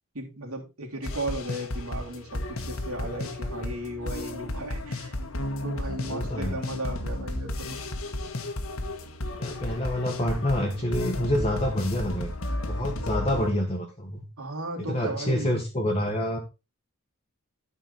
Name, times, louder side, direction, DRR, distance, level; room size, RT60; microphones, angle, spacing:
voice 1, 0.1-5.2 5.6-7.8 14.4-15.6, right 1 dB, 85° right, 0 dB, 3.3 m, -35 dB
sound 1, 1.0-13.5, left 1 dB, 70° left, 1.5 m, -33 dB
voice 2, 6.0-6.6 9.4-12.3 12.6-14.2 14.8-16.4, left 1 dB, 25° left, 0 dB, 1.6 m, -27 dB
12.5 x 5.6 x 4.2 m, 0.28 s
head